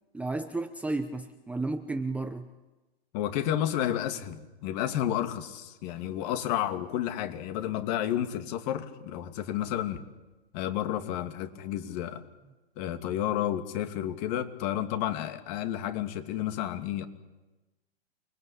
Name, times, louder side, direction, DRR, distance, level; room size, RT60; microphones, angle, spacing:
voice 1, 0.1-2.5, right 2 dB, 5° right, 7 dB, 0.8 m, -32 dB
voice 2, 3.1-10.0 10.5-12.2 12.8-17.1, left 11 dB, 40° left, 7 dB, 2.7 m, -31 dB
29.0 x 21.0 x 8.6 m, 1.1 s
hypercardioid pair, 125°, 31 cm